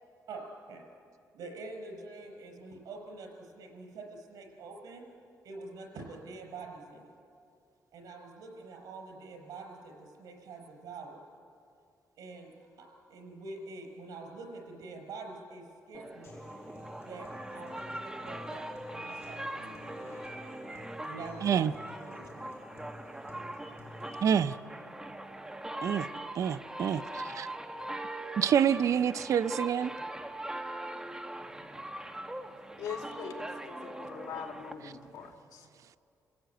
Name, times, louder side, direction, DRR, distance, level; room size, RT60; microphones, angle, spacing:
voice 1, 0.3-0.8 1.3-5.1 5.4-7.1 7.9-11.2 12.2-16.4 17.0-20.3 21.0-21.7 22.0-22.5, right 3 dB, 85° right, 3 dB, 5.0 m, -46 dB
sound 1, 15.9-35.3, right 1 dB, 10° right, 1.3 m, -41 dB
Human voice / Acoustic guitar, 16.2-24.2, left 2 dB, 40° left, 7.2 m, -52 dB
voice 2, 21.4-21.7 24.2-24.6 25.8-26.1 26.3-27.5 28.4-29.9 34.8-34.9, right 8 dB, 60° right, 12 dB, 0.6 m, -27 dB
voice 3, 32.8-35.7, left 7 dB, 90° left, 4 dB, 2.2 m, -42 dB
28.5 x 16.0 x 9.3 m, 2.5 s
cardioid pair, 115°, 6 cm